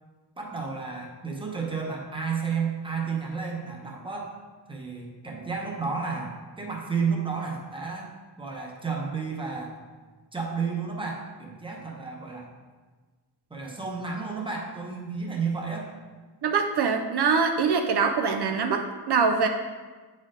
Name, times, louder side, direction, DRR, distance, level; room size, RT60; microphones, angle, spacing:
voice 1, 0.4-4.3 4.7-8.1 8.4-9.8 10.3-12.5 13.5-15.9, right 5 dB, 10° right, -1 dB, 0.8 m, -32 dB
voice 2, 16.4-19.5, right 5 dB, 65° right, 4 dB, 0.5 m, -24 dB
8.6 x 4.3 x 3.8 m, 1.4 s
wide cardioid pair, 180°, 42 cm